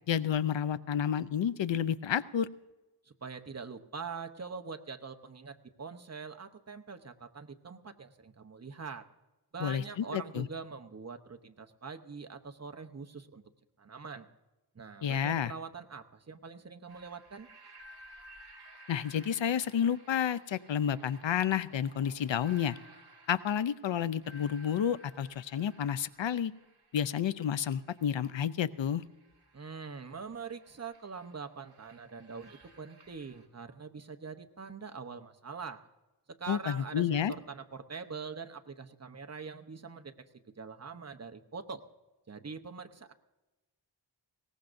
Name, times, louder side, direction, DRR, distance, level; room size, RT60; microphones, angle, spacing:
voice 1, 0.1-2.5 9.6-10.5 15.0-15.5 18.9-22.8 23.3-26.5 26.9-29.0 36.5-37.3, left 9 dB, 75° left, 15 dB, 0.6 m, -30 dB
voice 2, 3.1-9.1 9.5-13.4 13.8-14.3 14.7-17.5 29.5-35.8 36.3-40.1 40.6-41.8 42.3-43.1, right 5 dB, 35° right, 8 dB, 0.9 m, -44 dB
sound 1, 16.9-33.5, right 1 dB, 55° right, 2.3 m, -57 dB
21.0 x 18.0 x 2.6 m, 1.1 s
wide cardioid pair, 80°, 46 cm